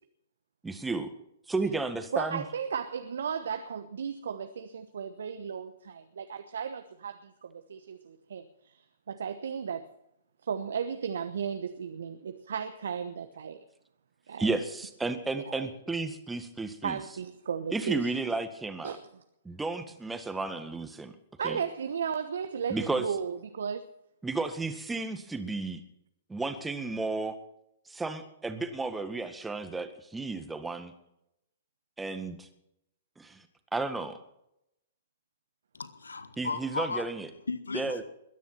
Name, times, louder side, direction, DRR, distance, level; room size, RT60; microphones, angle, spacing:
voice 1, 0.6-1.1 1.5-2.4 14.4-17.0 17.7-19.0 19.5-21.1 21.4-21.6 22.7-23.1 24.2-25.8 26.3-27.3 27.9-30.9 32.0-32.5 33.2-33.4 33.7-34.2 36.4-37.3 37.7-38.0, right 3 dB, 10° right, 1.8 m, -33 dB
voice 2, 2.1-8.8 9.1-9.9 10.4-13.6 14.3-14.5 15.5-15.7 16.8-18.1 18.8-19.0 21.4-23.8, right 7 dB, 70° right, 1.1 m, -35 dB
voice 3, 35.7-37.0 37.5-38.0, left 4 dB, 80° left, 1.0 m, -35 dB
21.5 x 10.5 x 5.9 m
figure-of-eight pair, 115°, 0 cm